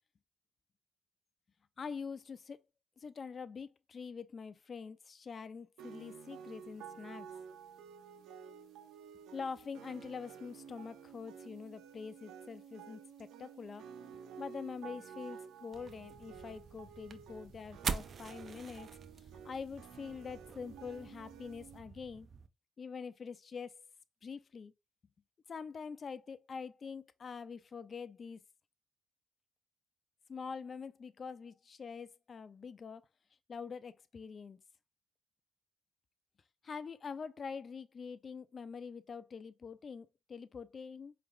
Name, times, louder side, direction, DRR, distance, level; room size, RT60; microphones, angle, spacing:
voice 1, 1.8-2.6 3.0-7.3 9.3-13.8 14.4-18.9 19.4-22.3 22.8-23.8 24.2-24.7 25.5-28.4 30.3-33.0 33.5-34.6 36.6-41.1, left 5 dB, 45° left, 0.5 m, -45 dB
sound 1, 5.8-21.8, right 7 dB, 90° right, 0.7 m, -52 dB
sound 2, 15.7-22.5, right 5 dB, 45° right, 0.5 m, -45 dB
4.7 x 3.3 x 2.3 m
cardioid pair, 90°, 0 cm